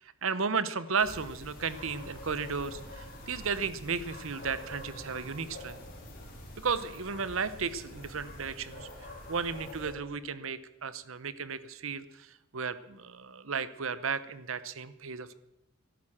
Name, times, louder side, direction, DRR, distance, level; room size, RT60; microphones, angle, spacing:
voice 1, 0.0-5.8 6.6-15.3, right 5 dB, 65° right, 15 dB, 0.9 m, -34 dB
sound 1, 1.0-9.9, left 1 dB, 40° left, 4.0 m, -46 dB
14.5 x 11.5 x 7.4 m, 0.86 s
head